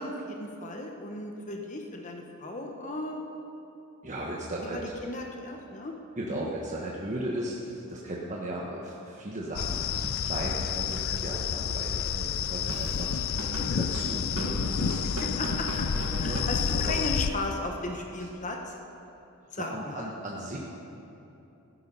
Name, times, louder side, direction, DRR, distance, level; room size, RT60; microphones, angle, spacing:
voice 1, 0.0-3.2 4.7-5.9 6.3-6.5 14.3-14.6 15.0-15.8 16.2-18.7 19.5-20.1, left 2 dB, 35° left, 2 dB, 1.1 m, -36 dB
voice 2, 4.0-4.8 6.2-13.2 13.8-15.1 16.2-17.0 19.6-20.6, right 1 dB, 35° right, -4 dB, 1.3 m, -36 dB
sound 1, 9.6-17.3, left 7 dB, 65° left, 0.4 m, -29 dB
Drum kit / Drum, 12.7-17.5, right 1 dB, 80° right, 1.8 m, -38 dB
17.0 x 10.0 x 5.4 m, 2.9 s
head